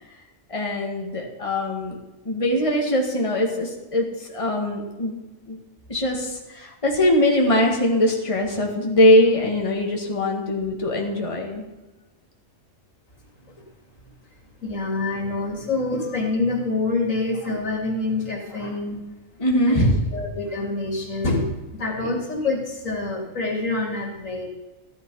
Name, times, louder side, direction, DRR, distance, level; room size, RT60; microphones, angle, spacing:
voice 1, 0.5-2.0 2.2-5.2 5.5-5.6 5.9-11.7 19.4-19.9 22.0-22.1, left 1 dB, 25° left, 0 dB, 2.1 m, -21 dB
voice 2, 14.6-19.0 19.7-24.5, left 3 dB, 80° left, 1 dB, 2.9 m, -26 dB
14.0 x 11.5 x 5.5 m, 1.1 s
omnidirectional pair, 1.3 m